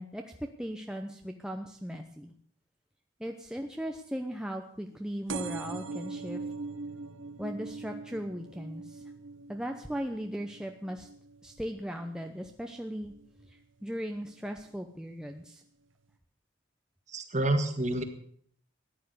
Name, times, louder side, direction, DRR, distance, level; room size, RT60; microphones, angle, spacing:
voice 1, 0.0-2.3 3.2-6.4 7.4-9.0 9.5-11.1 11.4-13.1 13.5-15.6, equal, 5° right, 3 dB, 0.8 m, -38 dB
sound 1, 5.3-12.5 13.0-13.5 14.3-14.4 14.6-14.7 15.0-15.1, right 4 dB, 75° right, 1.0 m, -42 dB
voice 2, 17.1-18.0, right 1 dB, 35° right, 7 dB, 1.8 m, -28 dB
14.5 x 10.0 x 8.1 m, 0.63 s
head